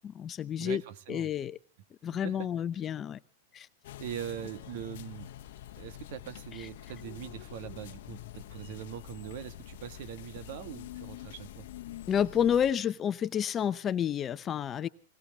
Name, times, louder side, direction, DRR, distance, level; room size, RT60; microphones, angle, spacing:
voice 1, 0.0-0.8 1.1-1.6 2.0-3.2 3.5-3.7 6.6-6.7 12.1-14.9, left 9 dB, 25° left, 14 dB, 0.7 m, -30 dB
voice 2, 0.6-1.3 2.2-2.5 4.0-5.3 5.8-11.7, right 10 dB, 60° right, 13 dB, 1.5 m, -42 dB
sound 1, 3.8-12.7, left 13 dB, 65° left, 1.0 m, -46 dB
19.0 x 19.0 x 3.6 m, 0.39 s
hypercardioid pair, 120°, 0 cm